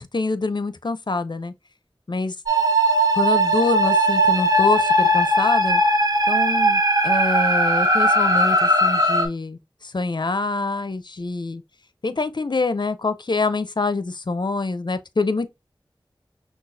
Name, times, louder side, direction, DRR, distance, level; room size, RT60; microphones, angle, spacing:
voice 1, 0.0-1.5 2.1-2.3 3.2-5.8 6.3-11.6 12.0-15.5, left 3 dB, 55° left, 0.6 m, -25 dB
sound 1, 2.5-9.3, right 1 dB, 40° right, 1.3 m, -18 dB
6.0 x 2.4 x 2.7 m
wide cardioid pair, 40°, 9 cm